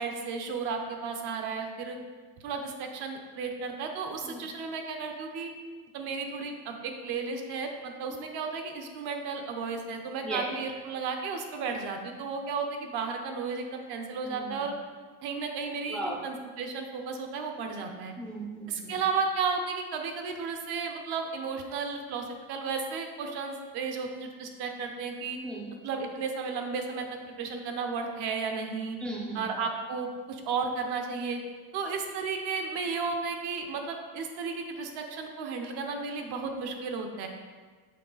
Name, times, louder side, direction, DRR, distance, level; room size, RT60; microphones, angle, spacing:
voice 1, 0.0-2.0 2.4-5.5 5.9-14.7 15.2-18.1 18.7-25.4 25.8-29.0 29.3-31.4 31.7-37.3, right 5 dB, 50° right, 4 dB, 0.9 m, -33 dB
voice 2, 10.2-10.5 14.2-14.6 15.9-16.2 18.2-19.0 25.4-25.7 29.0-29.4, right 1 dB, ahead, -4 dB, 0.5 m, -37 dB
6.7 x 4.5 x 3.9 m, 1.5 s
cardioid pair, 155°, 49 cm